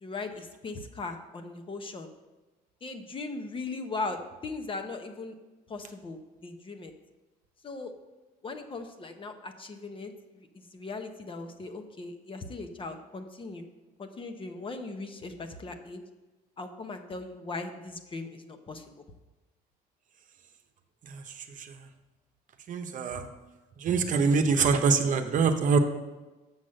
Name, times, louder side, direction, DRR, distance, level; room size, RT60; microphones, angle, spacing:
voice 1, 0.0-2.1 2.8-5.3 5.7-6.9 7.6-7.9 8.4-10.1 10.5-13.7 14.0-16.0 16.6-19.0, left 3 dB, 30° left, 6 dB, 0.9 m, -39 dB
voice 2, 21.0-21.8 22.7-23.3 23.8-25.8, right 5 dB, 50° right, 6 dB, 0.9 m, -25 dB
7.2 x 6.1 x 6.5 m, 1.1 s
cardioid pair, 110°, 17 cm